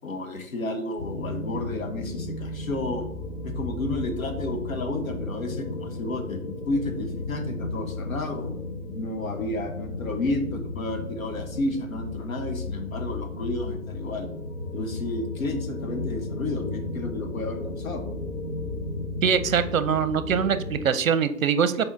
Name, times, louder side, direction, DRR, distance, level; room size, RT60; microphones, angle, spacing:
voice 1, 0.0-3.1 3.4-6.4 6.7-8.5 8.9-14.3 14.7-18.1, left 2 dB, 65° left, 4 dB, 1.3 m, -31 dB
sound 1, 1.0-20.9, left 2 dB, 90° left, 1.5 m, -34 dB
voice 2, 19.2-21.8, right 7 dB, 60° right, 12 dB, 0.7 m, -23 dB
5.9 x 4.2 x 3.9 m, 0.72 s
hypercardioid pair, 150°, 45 cm